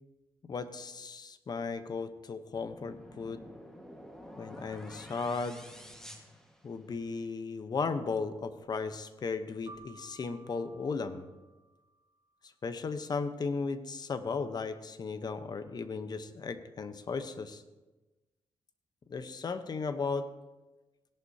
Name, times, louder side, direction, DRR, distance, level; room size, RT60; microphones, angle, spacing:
voice 1, 0.4-3.4 4.4-5.6 6.6-11.3 12.6-17.6 19.1-20.3, left 4 dB, 45° left, 11 dB, 0.9 m, -36 dB
sound 1, 2.5-7.1, equal, 5° left, 1.5 m, -50 dB
Keyboard (musical), 9.7-12.2, right 3 dB, 45° right, 3.6 m, -55 dB
16.5 x 11.0 x 2.8 m, 1.1 s
cardioid pair, 85°, 10 cm